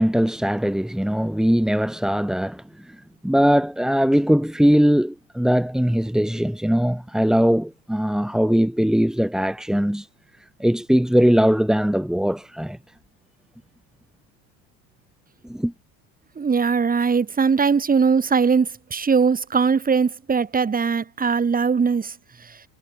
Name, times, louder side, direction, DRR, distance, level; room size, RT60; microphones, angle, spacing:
voice 1, 0.0-10.1 10.6-12.8 15.4-15.7, equal, ahead, 3.9 m, -20 dB
voice 2, 16.4-22.1, right 5 dB, 20° right, 7.1 m, -20 dB
supercardioid pair, 120°, 38 cm